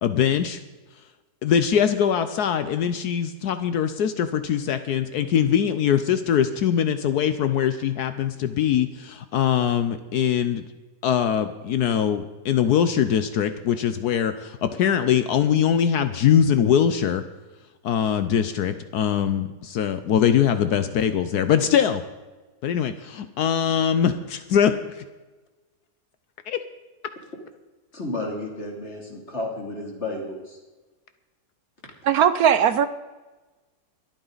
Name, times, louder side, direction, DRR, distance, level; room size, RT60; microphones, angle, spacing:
voice 1, 0.0-0.6 1.4-10.6 11.0-17.2 17.8-22.0 22.6-24.7 26.5-26.6, left 8 dB, 75° left, 1.2 m, -22 dB
voice 2, 27.9-30.6, left 2 dB, 40° left, 3.3 m, -32 dB
voice 3, 32.0-32.9, right 8 dB, 70° right, 1.1 m, -18 dB
24.5 x 9.1 x 4.0 m
omnidirectional pair, 1.8 m